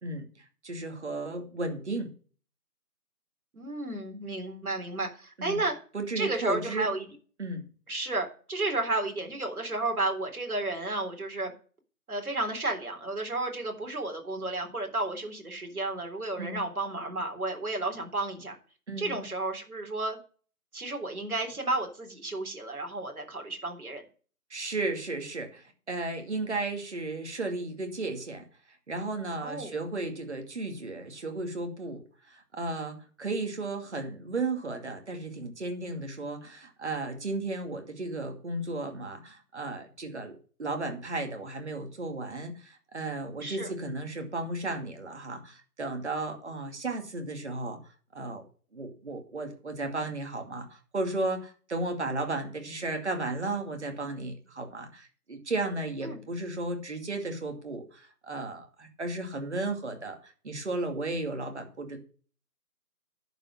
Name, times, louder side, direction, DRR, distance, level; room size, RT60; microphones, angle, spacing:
voice 1, 0.6-2.1 5.4-5.6 5.9-6.9 7.4-7.6 16.4-16.6 18.9-19.2 24.5-28.4 28.9-47.8 48.1-48.4 48.7-62.0, right 2 dB, 45° right, 5 dB, 2.5 m, -34 dB
voice 2, 3.5-5.7 6.2-7.1 7.9-11.5 12.1-18.6 19.0-20.2 20.7-24.0 29.4-29.7 43.4-43.7 56.0-56.2, right 2 dB, 65° right, 3 dB, 3.7 m, -32 dB
11.0 x 5.5 x 7.5 m, 0.40 s
figure-of-eight pair, 165°, 46 cm